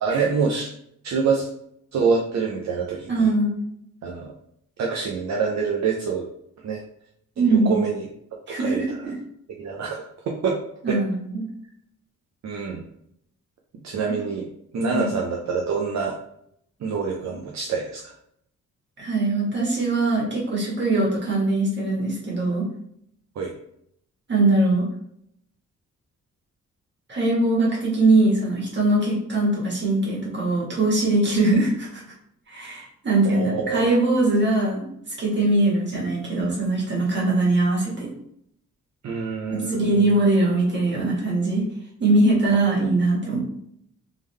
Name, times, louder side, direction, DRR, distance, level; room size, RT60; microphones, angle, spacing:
voice 1, 0.0-0.7 1.0-1.5 1.9-3.3 4.0-4.3 4.8-6.3 6.6-6.8 7.4-8.1 8.5-9.0 9.6-10.6 10.9-11.0 12.4-12.8 13.8-14.5 14.7-16.2 16.8-18.1 23.4-23.5 33.2-33.9 39.0-40.1, right 5 dB, 60° right, 0 dB, 0.6 m, -26 dB
voice 2, 3.1-3.6 7.4-7.8 8.5-9.1 10.8-11.4 14.9-15.1 19.0-22.7 24.3-24.9 27.1-32.0 32.5-34.9 35.2-38.1 39.5-41.6 42.0-43.4, right 2 dB, 35° right, -4 dB, 1.7 m, -21 dB
3.6 x 3.6 x 3.2 m, 0.72 s
wide cardioid pair, 155°, 30 cm